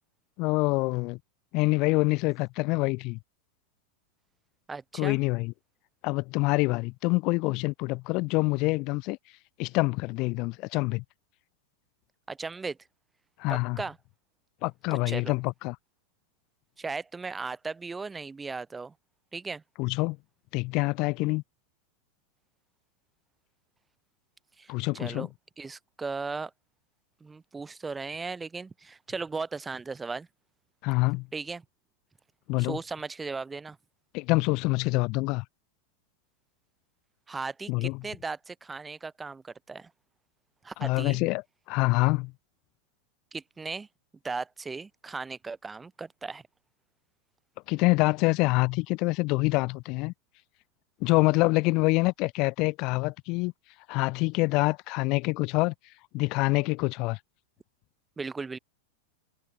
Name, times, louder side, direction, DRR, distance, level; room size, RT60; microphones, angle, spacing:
voice 1, 0.4-1.2 1.5-3.2 5.0-5.5 6.0-9.2 9.6-11.0 13.4-13.8 14.6-15.7 19.8-20.2 20.5-21.4 24.7-25.3 30.8-31.3 32.5-32.8 34.1-35.4 37.7-38.0 40.8-41.4 41.7-42.3 47.7-50.1 51.0-53.5 53.9-55.7 56.1-57.2, left 25 dB, 50° left, 1.4 m, -26 dB
voice 2, 4.7-5.2 12.3-12.8 13.5-14.0 15.1-15.4 16.8-18.9 19.3-19.6 24.6-25.3 25.6-26.5 27.2-30.3 31.3-31.6 32.6-33.8 37.3-39.9 40.6-41.2 43.3-43.9 44.2-46.4 58.2-58.6, right 4 dB, 15° right, 3.7 m, -37 dB
hypercardioid pair, 100°, 0 cm